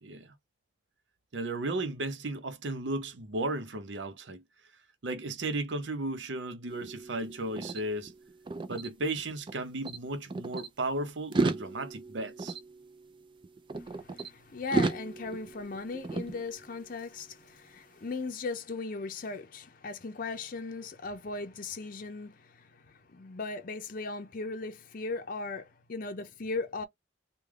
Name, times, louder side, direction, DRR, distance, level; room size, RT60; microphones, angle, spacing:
voice 1, 0.0-0.3 1.3-4.4 5.0-8.1 8.7-12.6, right 2 dB, 75° right, 0.7 m, -35 dB
sound 1, 6.7-9.6 9.8-10.7 11.2-14.3 14.7-17.0, right 3 dB, 25° right, 0.4 m, -35 dB
voice 2, 13.7-26.9, left 3 dB, 50° left, 0.6 m, -38 dB
3.3 x 2.3 x 3.5 m
head